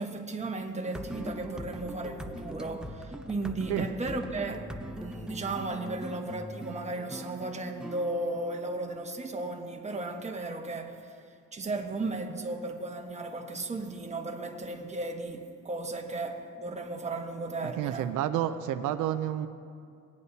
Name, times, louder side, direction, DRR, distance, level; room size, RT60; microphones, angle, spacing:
voice 1, 0.0-18.1, right 2 dB, 20° right, 1.2 m, -35 dB
sound 1, 0.8-10.3, equal, 5° right, 0.6 m, -42 dB
voice 2, 17.6-19.5, right 11 dB, 90° right, 0.5 m, -30 dB
19.0 x 9.4 x 2.8 m
cardioid pair, 90°, 30 cm